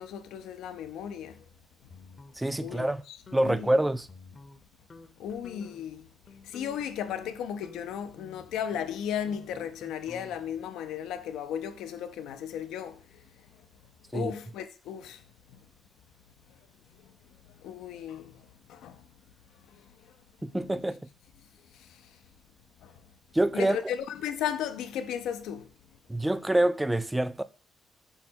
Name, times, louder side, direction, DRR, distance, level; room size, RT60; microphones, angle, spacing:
voice 1, 0.0-1.4 2.6-3.8 5.2-6.1 6.4-13.0 14.1-15.2 15.5-15.7 17.6-19.0 21.7-22.2 22.8-22.9 23.5-25.7, left 9 dB, 90° left, 0.4 m, -35 dB
sound 1, 1.9-2.9 3.3-3.7 4.1-4.6 4.9-5.1 5.4-5.9 6.3-10.6, left 4 dB, 40° left, 0.6 m, -51 dB
voice 2, 2.4-3.0 3.3-4.1 14.1-14.3 20.4-21.0 23.3-23.8 26.1-27.4, right 1 dB, 10° right, 0.3 m, -26 dB
5.4 x 2.1 x 4.3 m
cardioid pair, 90°, 0 cm